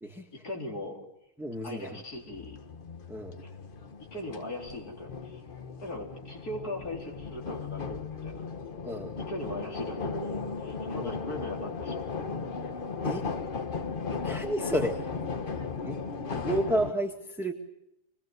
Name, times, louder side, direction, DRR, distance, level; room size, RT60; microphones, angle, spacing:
voice 1, 0.3-1.0 1.6-2.6 3.4-3.5 4.1-5.4 5.8-8.5 9.2-12.1, left 1 dB, 70° left, 0 dB, 4.5 m, -39 dB
voice 2, 1.4-2.0 3.1-3.4 8.8-9.1 11.0-11.2 13.0-13.3 14.2-15.0 15.8-16.0 16.3-17.5, right 1 dB, ahead, 1 dB, 1.7 m, -31 dB
sound 1, 2.2-16.9, left 4 dB, 40° left, 1.1 m, -36 dB
26.5 x 20.5 x 7.9 m, 0.84 s
omnidirectional pair, 1.7 m